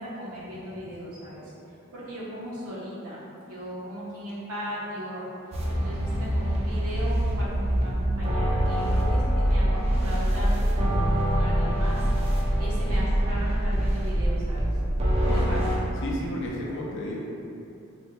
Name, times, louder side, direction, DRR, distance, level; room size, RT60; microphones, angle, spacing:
voice 1, 0.0-5.2 5.7-14.7 15.2-15.8, equal, 80° right, -7 dB, 0.8 m, -37 dB
sound 1, 5.5-15.8, equal, 30° right, 0.3 m, -24 dB
voice 2, 15.2-15.6 16.0-17.2, left 1 dB, 55° left, -3 dB, 0.5 m, -32 dB
3.2 x 2.1 x 3.0 m, 2.7 s
head